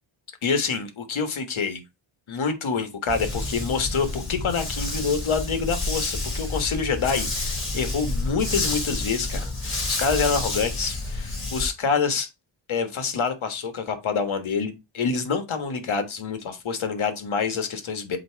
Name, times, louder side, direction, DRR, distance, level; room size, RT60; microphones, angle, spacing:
voice 1, 0.4-1.8 2.3-12.3 12.7-18.2, left 5 dB, 70° left, 1.4 m, -27 dB
Dog, 3.1-11.7, left 2 dB, 25° left, 4.2 m, -29 dB
7.8 x 3.0 x 4.6 m
wide cardioid pair, 100°, 49 cm